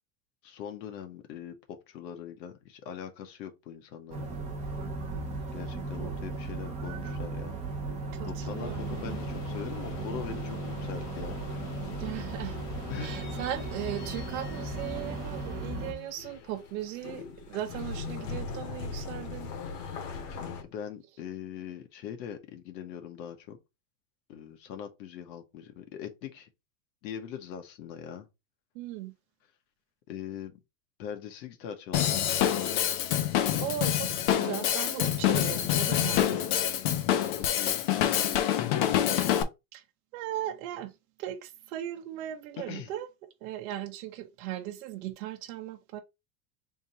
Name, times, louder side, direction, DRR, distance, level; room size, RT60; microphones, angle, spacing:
voice 1, 0.4-4.3 5.5-7.6 8.3-11.4 12.9-13.1 20.7-23.6 24.3-26.5 27.0-28.3 30.1-30.6 31.0-32.5 36.1-36.6 37.2-39.2 42.6-42.9, left 8 dB, 90° left, 1.3 m, -41 dB
sound 1, 4.1-15.9, right 2 dB, 15° right, 0.5 m, -36 dB
voice 2, 8.1-9.2 12.0-12.6 13.0-19.5 28.7-29.1 33.6-36.4 39.7-39.8 40.1-40.9 41.2-43.1 43.4-46.0, right 12 dB, 60° right, 0.8 m, -38 dB
sound 2, 8.5-20.6, left 5 dB, 70° left, 1.3 m, -41 dB
Drum kit / Drum, 31.9-39.4, left 11 dB, 40° left, 0.5 m, -26 dB
3.6 x 2.8 x 4.2 m
supercardioid pair, 170°, 49 cm